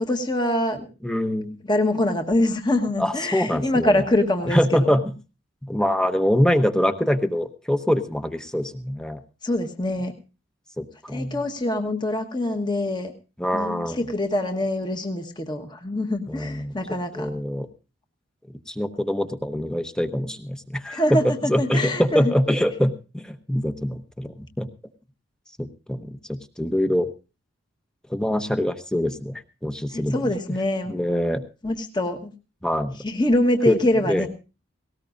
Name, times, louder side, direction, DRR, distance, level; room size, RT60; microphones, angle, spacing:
voice 1, 0.0-0.8 1.7-4.9 9.4-10.1 11.1-13.1 13.5-17.3 20.9-22.3 29.9-31.0 31.6-32.3 33.0-34.3, left 1 dB, 20° left, 5 dB, 1.3 m, -24 dB
voice 2, 1.0-1.6 3.0-4.0 4.5-5.1 5.7-9.2 10.8-11.4 13.4-14.0 16.3-16.7 17.2-17.7 18.7-24.7 25.6-27.1 28.1-29.3 29.6-30.2 30.9-31.4 32.6-33.0 33.7-33.8 34.0-34.3, equal, 5° left, 8 dB, 0.9 m, -24 dB
19.0 x 18.0 x 2.5 m, 0.31 s
head